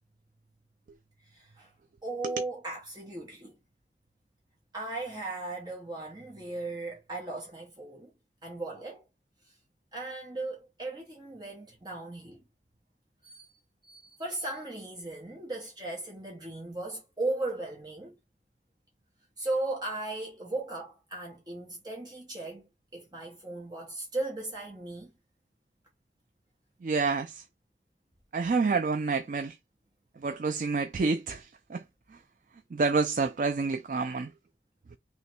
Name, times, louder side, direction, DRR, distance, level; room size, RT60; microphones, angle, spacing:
voice 1, 1.3-1.7 2.0-3.5 4.7-8.1 8.4-9.0 9.9-12.4 13.2-18.2 19.4-22.7 22.9-25.1, right 2 dB, 25° right, 1.0 m, -37 dB
voice 2, 26.8-27.4 28.3-29.6 30.2-31.8 32.1-32.2 32.7-34.3, right 4 dB, 45° right, 0.4 m, -28 dB
3.2 x 3.1 x 4.3 m
head